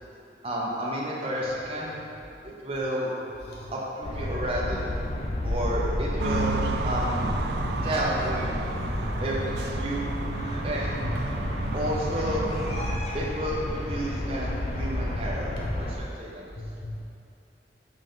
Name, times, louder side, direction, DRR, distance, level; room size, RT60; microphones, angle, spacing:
voice 1, 0.4-2.0 2.4-3.1 3.7-4.9 5.4-7.3 7.8-8.6 9.2-10.1 10.6-11.1 11.7-12.4 13.1-16.5, equal, 30° right, -5 dB, 0.7 m, -31 dB
sound 1, 4.0-16.0, left 1 dB, 35° left, 0.5 m, -31 dB
sound 2, 6.2-13.0, right 3 dB, 65° right, 0.4 m, -32 dB
voice 2, 16.6-17.0, left 2 dB, 70° left, -4 dB, 1.1 m, -38 dB
5.4 x 5.2 x 3.7 m, 2.7 s
head